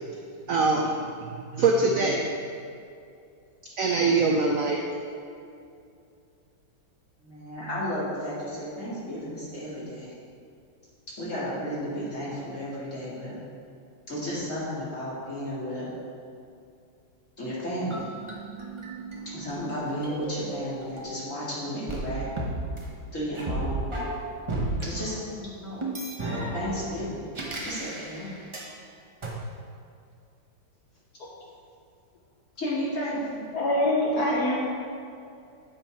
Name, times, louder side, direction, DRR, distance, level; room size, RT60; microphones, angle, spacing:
voice 1, 0.5-2.3 3.8-4.8, right 3 dB, 85° right, 0 dB, 0.7 m, -23 dB
voice 2, 7.2-10.1 11.2-13.3 14.1-15.9 17.4-18.1 19.3-22.3 23.1-24.1 24.8-25.8 26.5-27.3 27.6-28.3 32.6-33.4, equal, 40° left, -8 dB, 2.4 m, -33 dB
sound 1, 17.9-21.4 21.9-24.9 25.8-28.7 29.2-29.3, right 2 dB, 40° right, 0.4 m, -34 dB
voice 3, 33.5-34.6, left 1 dB, 60° left, -3 dB, 1.2 m, -24 dB
8.0 x 5.4 x 4.4 m, 2.5 s
omnidirectional pair, 2.2 m